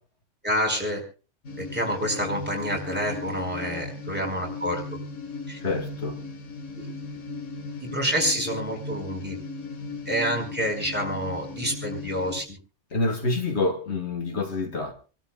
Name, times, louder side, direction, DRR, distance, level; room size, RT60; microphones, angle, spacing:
voice 1, 0.4-1.0 1.6-4.8 5.5-5.6 6.8-6.9 7.8-9.4 10.0-12.6, equal, 10° right, 5.1 m, -28 dB
sound 1, 1.4-12.4, left 3 dB, 80° left, 1.8 m, -37 dB
voice 2, 5.6-6.2 12.9-14.9, left 3 dB, 60° left, 1.8 m, -27 dB
28.0 x 13.0 x 2.4 m
omnidirectional pair, 1.3 m